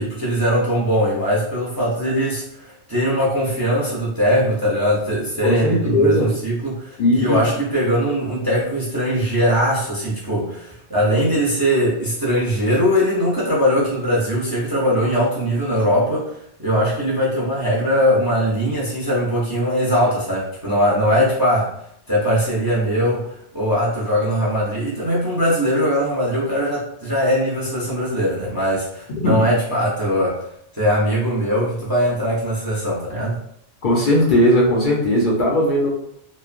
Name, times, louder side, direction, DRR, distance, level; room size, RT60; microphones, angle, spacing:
voice 1, 0.0-21.7 22.1-30.4 30.7-33.4, equal, 25° right, -6 dB, 0.6 m, -20 dB
voice 2, 5.4-6.3 7.0-7.4 29.2-29.4 33.8-35.9, left 1 dB, 55° left, -3 dB, 0.7 m, -17 dB
3.1 x 2.1 x 2.4 m, 0.73 s
omnidirectional pair, 1.1 m